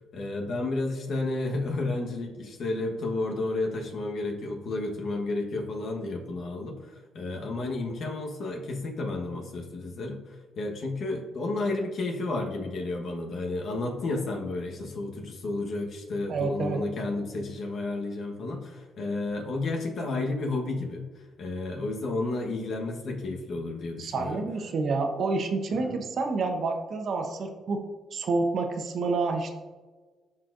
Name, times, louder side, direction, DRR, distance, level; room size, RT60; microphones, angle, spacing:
voice 1, 0.1-21.0 21.4-24.4 25.7-25.9, left 2 dB, 65° left, 2 dB, 1.2 m, -32 dB
voice 2, 16.3-16.8 24.0-27.8 28.1-29.5, right 3 dB, 60° right, 5 dB, 0.9 m, -28 dB
12.0 x 4.3 x 2.6 m, 1.3 s
cardioid pair, 90°, 0 cm